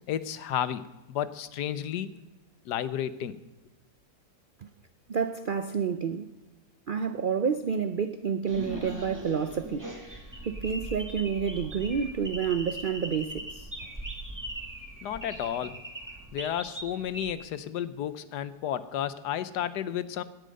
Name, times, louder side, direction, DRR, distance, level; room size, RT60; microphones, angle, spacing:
voice 1, 0.1-2.1 2.7-3.3 15.0-15.8 16.3-20.2, left 10 dB, 80° left, 14 dB, 1.4 m, -32 dB
voice 2, 5.1-6.3 6.9-9.9 10.5-13.7, right 6 dB, 90° right, 10 dB, 0.4 m, -29 dB
sound 1, 8.5-17.3, right 1 dB, 10° right, 2.0 m, -40 dB
17.0 x 10.0 x 5.3 m, 1.1 s
omnidirectional pair, 1.7 m